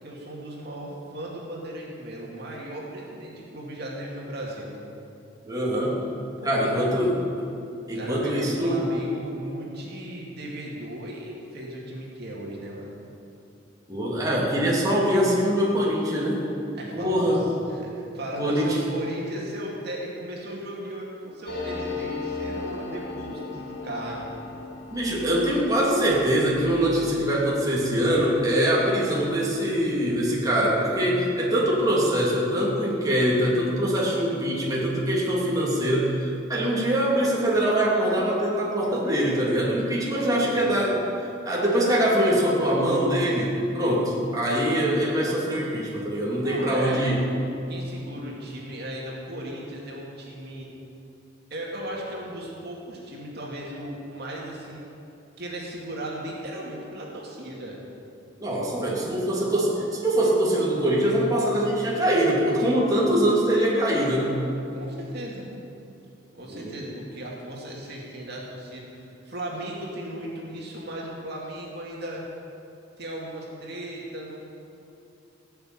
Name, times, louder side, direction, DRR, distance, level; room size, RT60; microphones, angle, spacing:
voice 1, 0.0-4.8 6.4-6.9 7.9-12.9 16.7-24.3 40.1-40.7 46.4-47.1 47.7-50.7 51.5-54.8 55.4-57.8 58.8-59.1 64.7-65.5 66.3-72.2 73.0-74.4, right 1 dB, 55° right, -3 dB, 2.5 m, -36 dB
voice 2, 5.4-6.0 6.4-7.1 7.4-7.5 7.9-8.8 13.9-16.5 16.9-17.4 18.4-18.8 24.9-41.0 41.4-47.2 58.4-64.5 66.5-66.8, right 1 dB, 20° right, -5 dB, 2.8 m, -23 dB
sound 1, 21.4-30.6 30.9-31.0 31.2-31.8, left 3 dB, 55° left, 3.9 m, -38 dB
17.0 x 7.0 x 9.0 m, 2.7 s
head